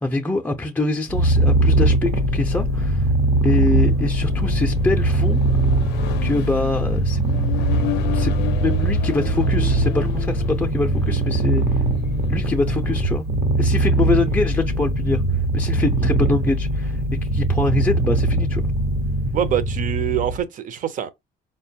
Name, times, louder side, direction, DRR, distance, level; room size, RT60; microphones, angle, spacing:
voice 1, 0.0-3.1 3.4-5.4 6.2-7.2 8.1-11.8 12.3-13.3 13.6-17.0 17.3-18.6, left 2 dB, 10° left, 0.4 m, -24 dB
Purr, 1.1-20.4, right 1 dB, 75° right, 0.9 m, -21 dB
Accelerating revving vroom, 2.6-13.1, left 14 dB, 85° left, 0.4 m, -35 dB
voice 2, 19.3-21.1, right 10 dB, 50° right, 0.6 m, -24 dB
4.2 x 2.2 x 2.7 m
cardioid pair, 110°, 17 cm